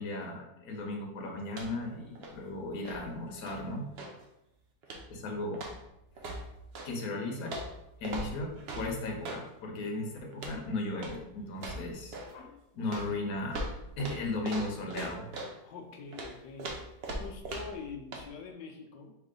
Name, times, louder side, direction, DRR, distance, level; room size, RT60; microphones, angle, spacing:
voice 1, 0.0-3.9 5.1-5.6 6.8-7.6 8.0-13.6 14.0-15.3, left 2 dB, 60° left, 1 dB, 1.3 m, -36 dB
sound 1, 1.5-4.2 4.8-5.2 5.5-6.9 7.5-9.5 10.3-10.6 11.0-11.2 11.5-12.4 12.9-15.6 16.1-17.9 18.1-18.3, right 1 dB, 80° right, 0.5 m, -41 dB
voice 2, 12.8-13.2 15.6-16.8 17.1-19.1, left 5 dB, 90° left, 3 dB, 1.3 m, -45 dB
4.6 x 3.1 x 3.7 m, 0.88 s
omnidirectional pair, 2.0 m